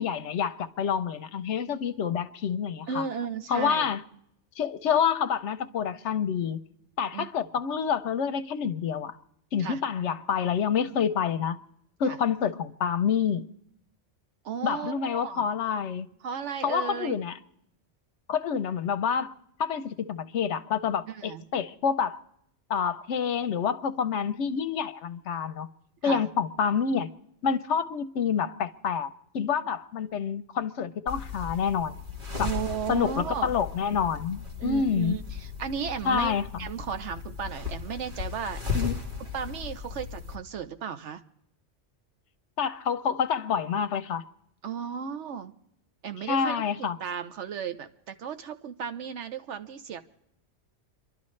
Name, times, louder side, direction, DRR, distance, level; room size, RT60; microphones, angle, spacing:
voice 1, 0.0-3.0 3.5-4.0 4.6-6.6 7.0-9.2 9.5-11.6 12.0-13.5 14.6-16.1 16.6-17.3 18.3-19.3 19.6-22.2 22.7-25.7 26.0-27.1 27.4-31.9 32.4-32.5 32.9-35.2 36.0-36.4 38.7-39.0 42.6-44.2 46.3-47.0, left 7 dB, 75° left, 1.0 m, -28 dB
voice 2, 2.9-3.9 7.1-7.3 9.6-9.8 12.0-12.2 14.4-15.5 16.2-17.2 21.1-21.4 26.0-26.2 32.4-33.5 34.6-38.6 39.2-41.2 44.6-45.5 46.0-50.0, right 7 dB, 75° right, 1.1 m, -35 dB
sound 1, 31.1-40.4, left 6 dB, 45° right, 1.9 m, -36 dB
28.0 x 11.5 x 3.2 m
omnidirectional pair, 1.2 m